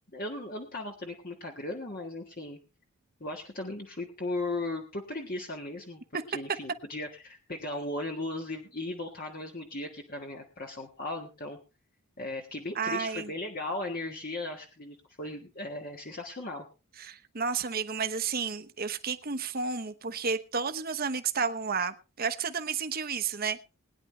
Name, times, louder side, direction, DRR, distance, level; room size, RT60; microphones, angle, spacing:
voice 1, 0.1-2.6 3.2-6.0 6.3-11.6 12.2-16.7, left 2 dB, 40° left, 2 dB, 1.5 m, -37 dB
voice 2, 12.8-13.3 17.0-23.6, right 5 dB, 40° right, 10 dB, 1.0 m, -31 dB
21.0 x 10.0 x 3.3 m, 0.31 s
head